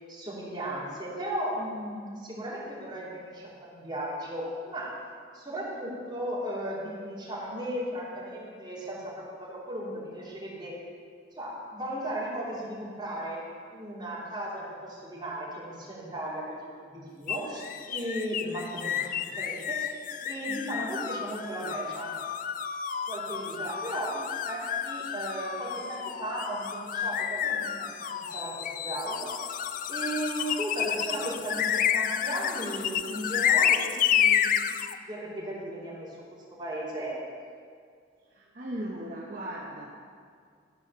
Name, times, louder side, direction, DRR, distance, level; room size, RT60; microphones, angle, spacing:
voice 1, 0.1-4.9 5.3-10.7 11.4-13.4 13.7-19.9 20.2-22.1 23.1-27.9 28.1-29.6 29.9-34.4 35.0-36.1 36.6-37.2, right 1 dB, 20° right, -8 dB, 3.0 m, -36 dB
sound 1, 17.3-35.0, left 9 dB, 45° left, 0.3 m, -30 dB
voice 2, 38.3-39.9, right 1 dB, 45° right, -4 dB, 1.0 m, -37 dB
13.5 x 4.9 x 6.7 m, 2.1 s
head